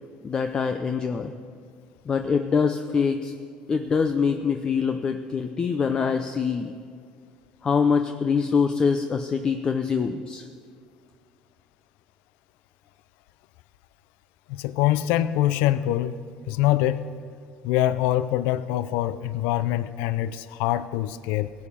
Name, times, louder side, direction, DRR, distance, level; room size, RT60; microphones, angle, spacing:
voice 1, 0.2-1.3 2.1-3.3 3.7-6.7 7.6-10.4, left 5 dB, 30° left, 7 dB, 0.6 m, -24 dB
voice 2, 14.5-16.2 16.5-17.1 17.6-21.5, left 13 dB, 80° left, 14 dB, 0.4 m, -24 dB
16.0 x 8.5 x 5.6 m, 2.1 s
cardioid pair, 120°, 3 cm